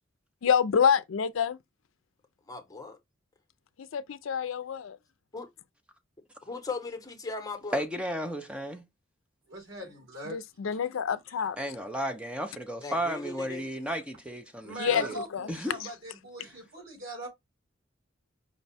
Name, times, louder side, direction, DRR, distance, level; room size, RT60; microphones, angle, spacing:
voice 1, 0.4-1.6 3.8-5.0 10.3-11.6 14.8-15.0 15.3-15.5, left 7 dB, 70° left, 0.4 m, -27 dB
voice 2, 2.5-3.0 5.3-5.5 6.5-7.8 12.8-13.6, left 4 dB, 20° left, 0.9 m, -38 dB
voice 3, 7.7-8.9 11.6-15.2 15.5-15.8, equal, 5° right, 0.5 m, -33 dB
voice 4, 9.5-10.4 10.7-10.8 11.3-11.4 14.6-17.3, right 1 dB, 70° right, 3.6 m, -41 dB
5.2 x 2.2 x 4.0 m
head